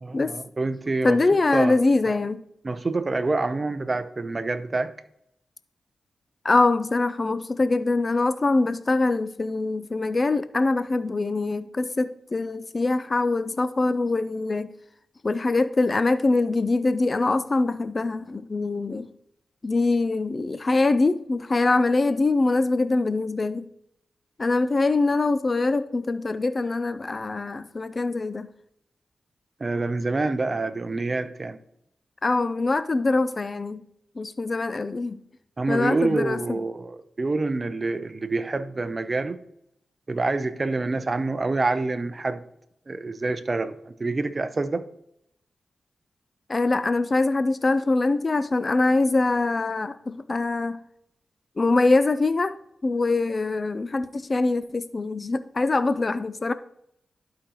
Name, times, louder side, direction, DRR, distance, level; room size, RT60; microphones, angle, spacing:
voice 1, 0.0-1.2 1.5-1.8 2.1-2.2 2.6-4.9 29.6-31.6 35.6-39.4 40.1-42.4 42.9-44.8, right 3 dB, 40° right, 0.6 m, -27 dB
voice 2, 1.0-2.4 6.4-14.7 15.2-19.1 19.6-23.7 24.4-28.5 32.2-33.8 34.2-35.2 35.7-36.6 46.5-50.8 51.6-52.6 52.8-56.5, left 3 dB, 40° left, 0.4 m, -23 dB
11.5 x 5.0 x 3.0 m
cardioid pair, 65°, 0 cm